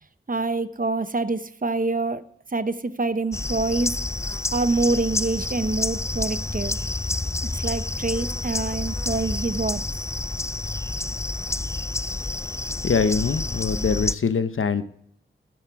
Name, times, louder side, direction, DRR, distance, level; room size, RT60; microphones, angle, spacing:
voice 1, 0.3-2.2 2.5-4.0 4.5-6.8 7.5-9.8, right 3 dB, 40° right, 13 dB, 0.8 m, -26 dB
sound 1, 3.3-14.2, left 2 dB, 15° left, 0.3 m, -29 dB
voice 2, 12.8-14.8, left 5 dB, 80° left, 12 dB, 0.8 m, -23 dB
13.0 x 7.7 x 4.6 m, 0.68 s
wide cardioid pair, 50°, 21 cm